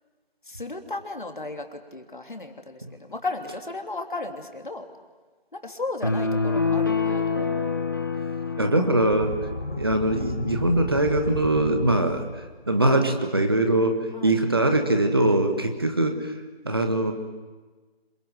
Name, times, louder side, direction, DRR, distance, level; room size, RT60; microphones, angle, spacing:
voice 1, 0.4-4.9 5.5-7.7 14.1-14.4, left 2 dB, 50° left, 5 dB, 3.1 m, -35 dB
sound 1, 6.0-9.6, left 4 dB, 20° left, 1.2 m, -26 dB
voice 2, 8.6-9.3 9.7-16.3 16.6-17.1, right 1 dB, 25° right, 6 dB, 1.5 m, -22 dB
sound 2, 9.0-12.7, left 2 dB, 70° left, 1.9 m, -34 dB
26.5 x 23.0 x 9.3 m, 1.3 s
figure-of-eight pair, 170°, 31 cm